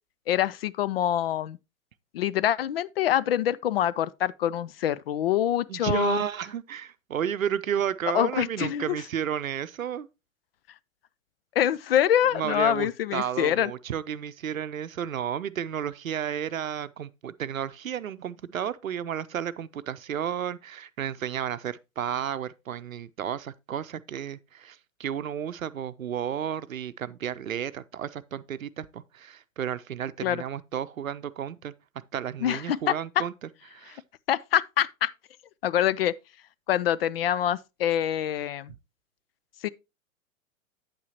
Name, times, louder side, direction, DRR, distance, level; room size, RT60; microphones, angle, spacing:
voice 1, 0.3-1.6 2.1-6.2 8.1-8.9 11.6-13.7 30.2-30.4 32.4-33.2 34.3-35.1 35.6-36.1 36.7-38.7 39.6-39.7, left 11 dB, 50° left, 0.4 m, -25 dB
voice 2, 5.7-10.1 12.3-33.3 33.7-34.0, right 9 dB, 75° right, 0.7 m, -32 dB
8.6 x 8.2 x 2.9 m
figure-of-eight pair, 100°, 41 cm